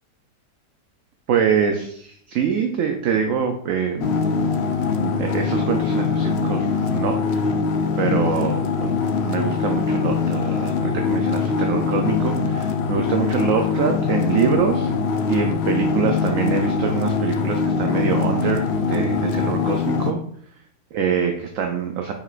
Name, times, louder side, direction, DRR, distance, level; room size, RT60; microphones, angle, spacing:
voice 1, 1.3-4.1 5.0-7.6 8.0-8.9 9.2-14.9 15.3-20.2 20.9-22.1, right 7 dB, 65° right, 4 dB, 0.8 m, -24 dB
sound 1, 4.0-20.1, left 5 dB, 80° left, 0.5 m, -22 dB
6.8 x 6.2 x 2.5 m, 0.64 s
omnidirectional pair, 1.8 m